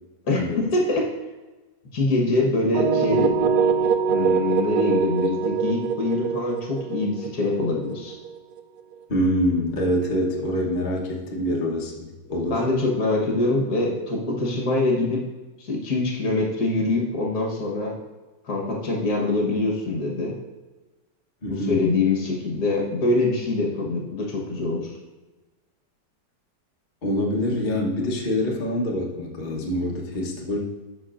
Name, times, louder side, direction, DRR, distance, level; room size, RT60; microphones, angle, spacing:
voice 1, 0.3-1.1 1.9-3.3 4.1-8.2 12.5-15.2 15.6-18.0 18.5-20.4 21.5-24.9, left 2 dB, 60° left, -1 dB, 1.8 m, -24 dB
sound 1, 2.7-8.6, right 6 dB, 70° right, 1.2 m, -23 dB
voice 2, 9.1-12.6 21.4-21.9 27.0-30.6, equal, 30° left, -3 dB, 1.1 m, -25 dB
13.0 x 6.2 x 2.5 m, 1.2 s
omnidirectional pair, 1.9 m